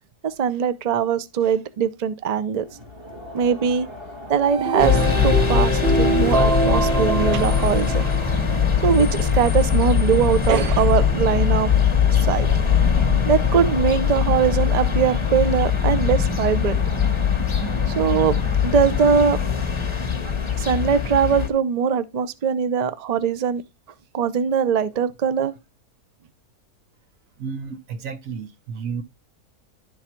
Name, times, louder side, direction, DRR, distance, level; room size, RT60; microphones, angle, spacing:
voice 1, 0.2-2.6 3.3-3.9 4.3-8.0 8.8-11.7 12.1-12.5 13.3-16.8 17.9-19.4 20.5-23.6 24.1-25.5, right 7 dB, 85° right, 0.3 m, -21 dB
Crowd, 2.5-7.7, left 1 dB, 15° right, 1.8 m, -42 dB
sound 1, 4.4-8.6, right 3 dB, 45° right, 1.0 m, -24 dB
sound 2, 4.8-21.5, left 7 dB, 20° left, 0.9 m, -21 dB
voice 2, 27.4-29.0, right 6 dB, 60° right, 1.3 m, -32 dB
11.5 x 4.0 x 4.4 m
omnidirectional pair, 1.7 m